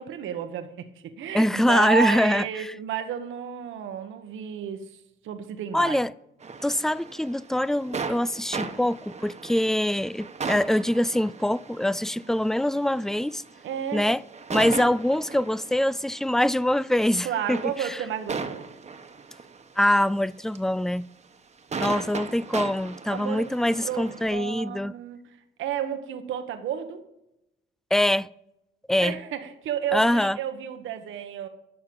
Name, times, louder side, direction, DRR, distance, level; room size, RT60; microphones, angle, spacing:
voice 1, 0.0-5.0 5.2-6.0 13.6-14.1 17.2-18.7 23.1-23.5 23.8-25.2 25.6-27.0 29.0-31.5, right 9 dB, 80° right, 1.3 m, -32 dB
voice 2, 1.3-2.7 5.7-6.1 6.6-13.4 13.9-14.2 14.5-18.0 19.8-21.1 21.8-24.9 27.9-28.3 28.9-29.2 29.9-30.4, left 1 dB, ahead, 0.3 m, -24 dB
sound 1, 6.4-19.6 20.6-20.7 21.7-24.3, right 5 dB, 35° right, 1.2 m, -37 dB
12.5 x 5.8 x 8.7 m
cardioid pair, 90°, 20 cm